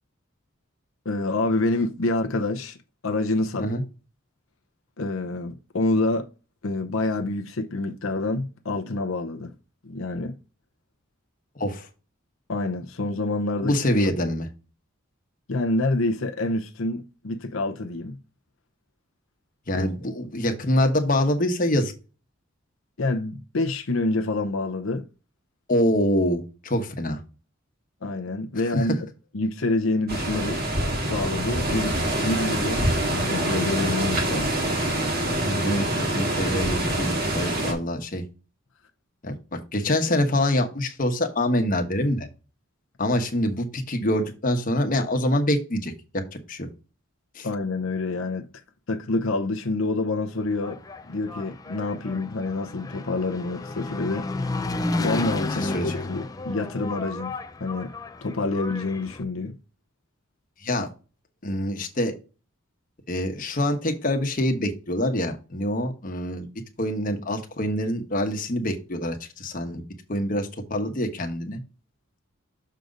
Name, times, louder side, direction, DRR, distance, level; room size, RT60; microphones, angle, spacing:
voice 1, 1.0-2.8 3.0-3.6 5.0-6.3 6.6-9.5 9.8-10.4 12.5-13.7 15.5-18.2 19.7-19.9 23.0-25.0 28.0-28.9 29.3-30.7 31.0-31.9 32.2-34.5 47.4-48.4 48.9-50.8 51.1-54.3 55.0-57.3 57.6-57.9 58.2-59.5, left 2 dB, 70° left, 0.8 m, -27 dB
voice 2, 11.5-11.9 13.6-14.5 19.7-21.9 25.7-27.2 28.7-28.9 31.7-31.8 35.4-38.2 39.2-42.3 43.0-46.7 47.3-47.5 55.5-55.9 60.6-60.9 61.4-62.2 63.1-66.5 66.8-71.6, left 1 dB, 40° left, 1.2 m, -25 dB
sound 1, 30.1-37.7, right 1 dB, 45° right, 2.0 m, -25 dB
Engine, 50.4-59.2, left 2 dB, 15° left, 0.4 m, -32 dB
6.5 x 3.9 x 5.1 m
head